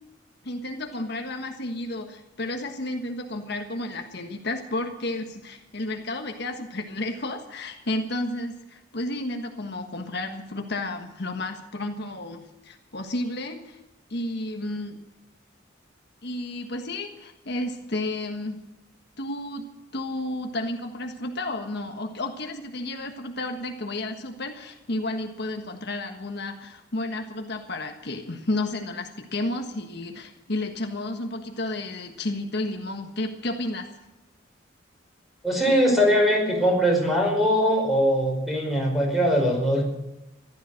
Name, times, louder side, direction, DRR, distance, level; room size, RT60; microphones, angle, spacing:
voice 1, 0.4-13.8 14.1-15.0 16.2-18.6 19.2-19.7 19.9-33.9, left 2 dB, 60° left, 4 dB, 1.5 m, -32 dB
voice 2, 35.4-39.8, equal, ahead, 0 dB, 5.2 m, -21 dB
15.5 x 12.5 x 6.5 m, 0.97 s
head